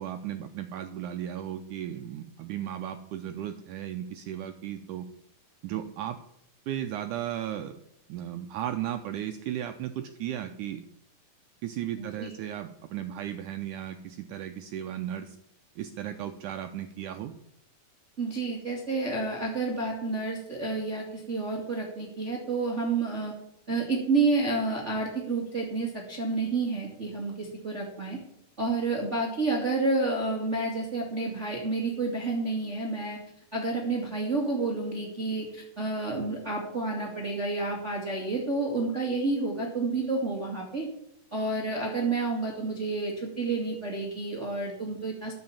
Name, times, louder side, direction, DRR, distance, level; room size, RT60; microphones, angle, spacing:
voice 1, 0.0-5.1 5.6-6.2 6.7-7.8 8.1-10.8 11.6-15.4 15.8-17.3, right 11 dB, 80° right, 7 dB, 1.9 m, -35 dB
voice 2, 11.9-12.3 18.2-23.3 23.7-28.2 28.6-33.2 33.5-40.9 41.3-45.3, right 3 dB, 25° right, -1 dB, 1.8 m, -30 dB
11.5 x 7.8 x 7.1 m, 0.78 s
omnidirectional pair, 4.2 m